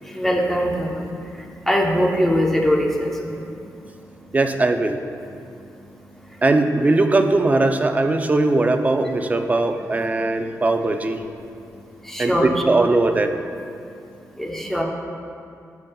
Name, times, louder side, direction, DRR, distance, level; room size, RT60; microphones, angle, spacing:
voice 1, 0.0-4.4 5.2-6.4 9.9-10.1 10.5-10.8 11.4-12.5 13.5-14.8, equal, 5° left, 0 dB, 0.9 m, -25 dB
voice 2, 4.3-5.0 6.4-11.2 12.2-13.3, right 2 dB, 25° right, 6 dB, 0.5 m, -19 dB
15.0 x 5.2 x 2.3 m, 2.5 s
cardioid pair, 105°, 6 cm